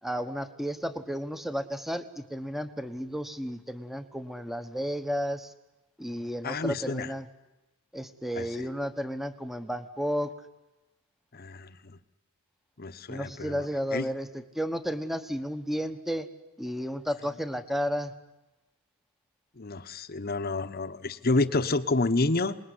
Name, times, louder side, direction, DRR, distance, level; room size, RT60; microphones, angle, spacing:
voice 1, 0.0-5.5 6.0-7.3 7.9-10.3 13.1-16.3 16.6-18.1, equal, ahead, 10 dB, 1.2 m, -32 dB
voice 2, 6.4-7.1 8.4-8.5 11.3-12.0 12.8-13.7 13.9-14.1 19.6-22.6, left 2 dB, 45° left, 10 dB, 1.1 m, -29 dB
26.5 x 20.5 x 9.8 m, 1.0 s
head